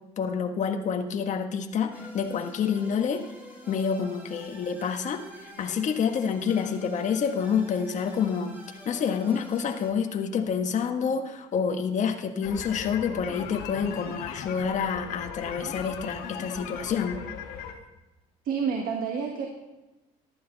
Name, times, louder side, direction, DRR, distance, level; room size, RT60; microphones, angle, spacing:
voice 1, 0.2-3.2 3.7-8.5 8.8-17.2, left 6 dB, 50° left, 5 dB, 1.5 m, -28 dB
sound 1, 1.9-9.9, equal, 10° right, 5.8 m, -47 dB
sound 2, 12.4-17.7, left 8 dB, 80° left, 1.8 m, -38 dB
voice 2, 18.4-19.5, right 6 dB, 65° right, 2 dB, 1.9 m, -28 dB
14.5 x 12.0 x 4.1 m, 1.1 s
cardioid pair, 95°, 16 cm